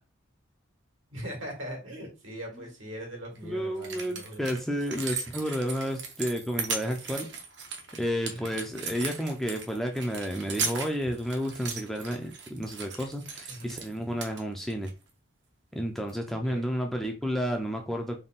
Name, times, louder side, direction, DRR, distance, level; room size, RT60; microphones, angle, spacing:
voice 1, 1.1-4.5 8.3-8.6 13.5-13.8 16.5-16.7, equal, 75° right, -1 dB, 1.7 m, -40 dB
sound 1, 3.3-3.4 3.8-13.9 14.2-14.9 16.0-16.1, right 5 dB, 60° right, 0.8 m, -37 dB
voice 2, 3.4-7.3 8.0-14.9 15.7-18.2, equal, ahead, 2 dB, 0.4 m, -31 dB
3.6 x 2.2 x 4.0 m, 0.30 s
head